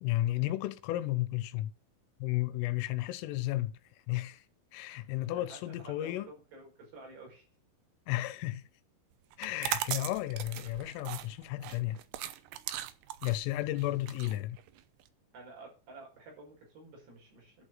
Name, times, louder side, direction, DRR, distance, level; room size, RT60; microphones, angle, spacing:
voice 1, 0.0-1.7 2.2-3.7 4.1-4.4 4.7-6.3 8.1-8.7 9.4-12.0 13.2-14.6, left 16 dB, 85° left, 3.4 m, -33 dB
voice 2, 5.3-7.5 13.8-13.9 15.3-17.6, right 3 dB, 55° right, 7.3 m, -51 dB
sound 1, 9.3-15.1, right 13 dB, 80° right, 2.5 m, -38 dB
11.5 x 6.4 x 7.7 m
omnidirectional pair, 5.8 m